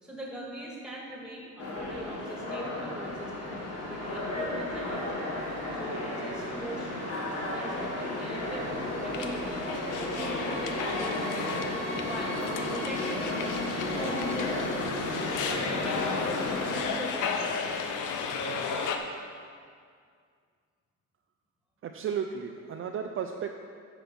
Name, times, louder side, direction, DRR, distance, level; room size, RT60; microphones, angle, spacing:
voice 1, 0.0-3.6 3.9-5.3 5.7-8.7 9.0-9.6 10.0-11.7 12.0-12.4 12.7-13.3 13.7-14.6 15.7-18.0 18.6-18.9, right 1 dB, 5° right, -3 dB, 2.0 m, -41 dB
sound 1, 1.6-16.8, left 1 dB, 55° left, 1.8 m, -33 dB
sound 2, 9.1-19.0, left 5 dB, 80° left, 0.8 m, -34 dB
sound 3, 10.1-11.6, equal, 25° left, 1.8 m, -50 dB
voice 2, 21.8-23.6, right 7 dB, 45° right, 4 dB, 0.5 m, -34 dB
10.0 x 6.1 x 5.3 m, 2.1 s
cardioid pair, 135°, 30 cm